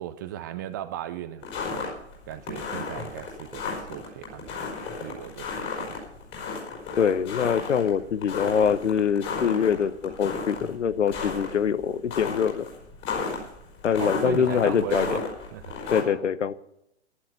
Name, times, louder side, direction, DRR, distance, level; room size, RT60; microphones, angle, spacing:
voice 1, 0.0-1.9 2.3-6.0 14.0-15.3 15.5-15.7, right 12 dB, 15° right, 0.4 m, -37 dB
sound 1, 1.4-16.0, left 4 dB, 30° left, 5.0 m, -34 dB
voice 2, 7.0-12.7 13.8-15.2 15.9-16.5, left 7 dB, 75° left, 0.9 m, -24 dB
11.5 x 11.5 x 6.9 m
hypercardioid pair, 125°, 36 cm